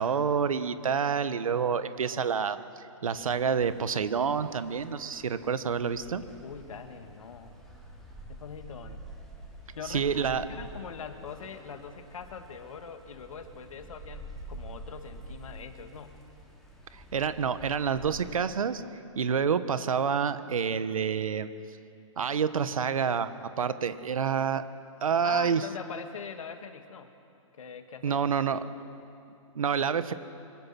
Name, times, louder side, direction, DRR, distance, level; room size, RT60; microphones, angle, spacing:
voice 1, 0.0-2.6 3.0-6.2 9.9-10.4 16.9-18.8 19.1-21.5 22.2-24.6 25.0-25.6 28.0-28.6 29.5-30.1, right 6 dB, 90° right, 12 dB, 1.4 m, -28 dB
sound 1, 3.0-18.4, right 1 dB, ahead, 3.8 m, -48 dB
voice 2, 6.0-7.5 8.3-9.0 9.7-16.3 25.2-27.1 27.6-28.6, left 6 dB, 75° left, 7 dB, 2.2 m, -43 dB
25.0 x 25.0 x 6.1 m, 2.5 s
hypercardioid pair, 155°, 17 cm